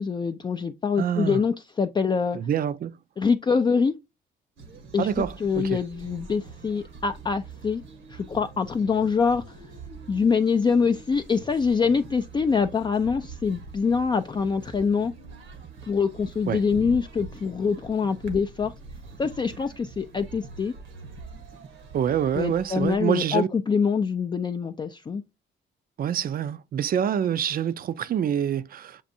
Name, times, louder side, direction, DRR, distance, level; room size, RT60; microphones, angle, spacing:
voice 1, 0.0-2.4 3.2-3.9 4.9-7.8 8.1-9.6 10.1-15.1 15.9-18.7 19.2-20.7 22.3-25.2, left 5 dB, 25° left, 0.4 m, -25 dB
voice 2, 1.0-1.4 2.3-2.9 5.0-5.8 16.5-16.6 21.9-23.5 26.0-29.0, right 9 dB, 45° right, 0.5 m, -26 dB
sound 1, 4.6-23.0, right 4 dB, 75° right, 1.1 m, -44 dB
7.2 x 2.5 x 2.6 m
cardioid pair, 90°, 20 cm